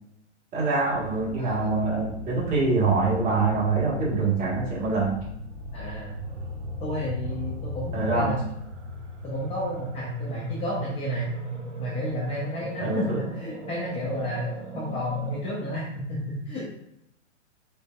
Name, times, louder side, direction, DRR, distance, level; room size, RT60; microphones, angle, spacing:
voice 1, 0.5-5.1 7.9-8.3 12.8-13.2, right 3 dB, 20° right, -5 dB, 1.4 m, -25 dB
sound 1, 0.9-15.4, right 1 dB, 70° right, 1.1 m, -37 dB
voice 2, 1.4-1.7 5.7-6.1 6.8-8.4 9.2-11.3 11.8-15.8 16.1-16.2 16.5-16.7, left 1 dB, 15° left, -5 dB, 0.7 m, -31 dB
5.1 x 4.0 x 2.3 m, 0.76 s
hypercardioid pair, 125°, 36 cm